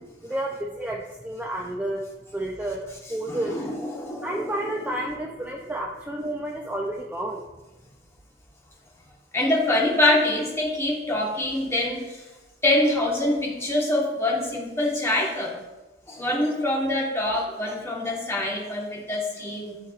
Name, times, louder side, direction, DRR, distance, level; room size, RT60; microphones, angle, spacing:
voice 1, 0.2-2.0 2.3-3.5 4.2-7.4, right 1 dB, 10° right, -1 dB, 0.4 m, -30 dB
voice 2, 3.0-4.9 9.3-12.3 12.6-15.6 16.1-19.7, left 1 dB, 15° left, -3 dB, 1.2 m, -25 dB
11.0 x 4.6 x 2.4 m, 1.1 s
head